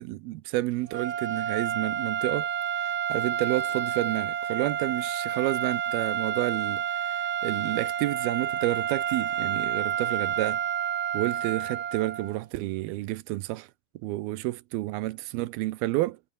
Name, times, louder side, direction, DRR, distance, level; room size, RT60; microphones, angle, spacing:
voice 1, 0.0-2.5 3.1-10.6 11.1-13.7 14.0-16.2, right 18 dB, 85° right, 2.7 m, -30 dB
sound 1, 0.9-12.4, right 9 dB, 50° right, 2.2 m, -30 dB
omnidirectional pair, 4.4 m